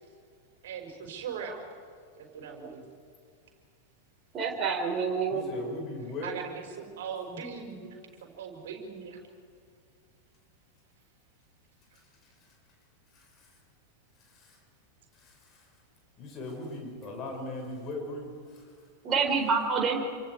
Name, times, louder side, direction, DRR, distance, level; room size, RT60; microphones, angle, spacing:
voice 1, 0.6-1.6 2.2-2.8 6.2-9.2, right 6 dB, 55° right, 2 dB, 5.3 m, -40 dB
voice 2, 4.3-5.4 19.0-20.0, right 5 dB, 25° right, 1 dB, 4.7 m, -27 dB
voice 3, 5.3-6.4 12.4-12.5 13.1-13.5 14.2-14.6 15.1-15.7 16.2-18.7, left 2 dB, 30° left, 1 dB, 6.1 m, -40 dB
28.0 x 26.5 x 4.9 m, 2.2 s
figure-of-eight pair, 90°, 0 cm